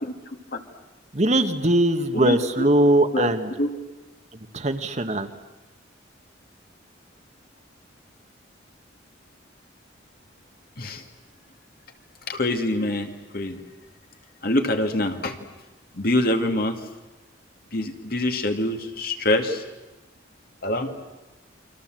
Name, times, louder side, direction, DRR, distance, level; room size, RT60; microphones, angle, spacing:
voice 1, 0.0-0.6 2.1-2.7 3.1-3.3 3.6-3.7 10.8-11.0 12.3-13.6 14.4-15.4 15.9-16.8 17.7-19.6 20.6-21.0, left 1 dB, 50° left, 5 dB, 2.2 m, -25 dB
voice 2, 1.1-3.5 4.5-5.3, right 1 dB, 35° right, 8 dB, 1.5 m, -21 dB
29.0 x 24.5 x 7.7 m, 1.1 s
head